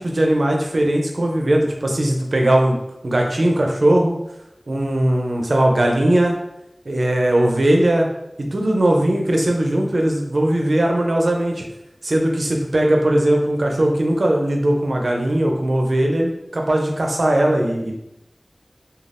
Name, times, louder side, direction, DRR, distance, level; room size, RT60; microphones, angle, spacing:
voice 1, 0.0-2.8 3.0-4.2 4.7-6.3 6.9-8.1 8.5-11.7 12.0-17.9, right 1 dB, 80° right, 1 dB, 0.5 m, -19 dB
3.3 x 2.3 x 2.5 m, 0.85 s
wide cardioid pair, 45°, 0 cm